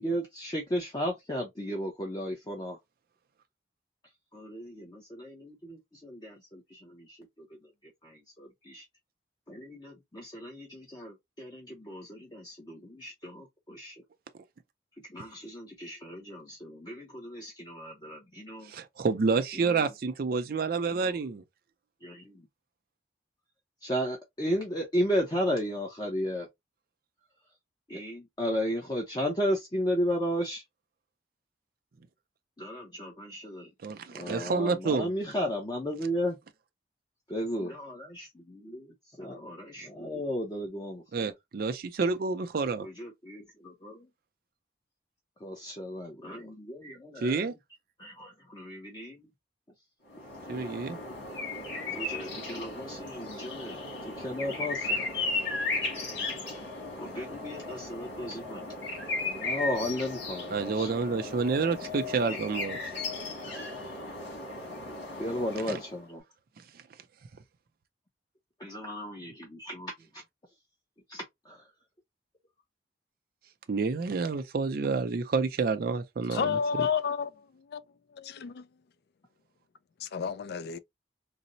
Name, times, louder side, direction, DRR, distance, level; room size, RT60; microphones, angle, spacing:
voice 1, 0.0-2.8 4.3-7.2 8.0-8.8 9.5-13.9 15.1-18.7 19.5-19.9 20.9-21.1 22.0-22.5 23.8-26.5 27.9-30.6 32.6-33.7 34.1-36.4 37.3-38.9 39.2-41.0 42.8-44.1 45.4-47.5 48.0-49.2 51.9-55.0 56.9-58.7 59.2-60.9 65.2-66.2 68.6-69.9 71.1-71.2, equal, 25° left, 0.6 m, -34 dB
voice 2, 18.6-21.4 33.8-35.1 41.1-42.9 47.2-47.5 50.5-51.0 60.5-63.0 65.7-65.8 73.7-76.9, right 4 dB, 55° right, 0.4 m, -29 dB
sound 1, 50.1-66.0, left 3 dB, 80° left, 1.8 m, -36 dB
voice 3, 76.3-77.8 78.1-78.6 80.0-80.8, left 6 dB, 60° left, 0.3 m, -31 dB
4.0 x 2.0 x 2.5 m
head